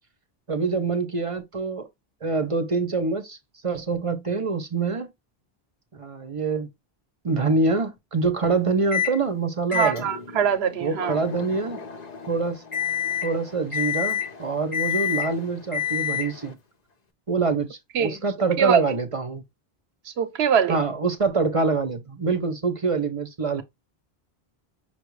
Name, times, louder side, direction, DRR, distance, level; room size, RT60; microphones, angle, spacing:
voice 1, 0.5-1.9 2.2-3.4 3.6-5.1 5.9-6.7 7.2-10.1 10.8-11.8 12.3-12.6 13.2-16.6 17.3-19.4 20.7-23.6, right 4 dB, 35° right, 0.7 m, -25 dB
Microwave oven, 8.9-9.2 9.7-16.5, left 9 dB, 45° left, 0.7 m, -29 dB
voice 2, 9.7-11.2 17.9-18.2 18.6-18.8 20.1-20.8, right 7 dB, 85° right, 1.0 m, -22 dB
5.7 x 2.3 x 3.1 m
omnidirectional pair, 1.0 m